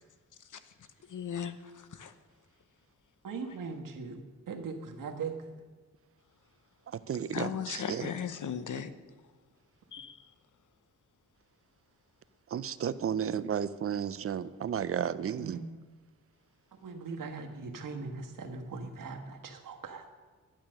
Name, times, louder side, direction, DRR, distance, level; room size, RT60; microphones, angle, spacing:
voice 1, 1.1-2.1 7.3-8.9 9.9-10.3, left 8 dB, 70° left, 11 dB, 0.9 m, -37 dB
voice 2, 3.2-5.5 15.3-15.7 16.8-20.1, right 4 dB, 85° right, 3 dB, 1.4 m, -40 dB
voice 3, 6.9-8.0 12.5-15.6, right 8 dB, 45° right, 15 dB, 0.5 m, -33 dB
11.5 x 8.9 x 6.3 m, 1.4 s
wide cardioid pair, 120°, 32 cm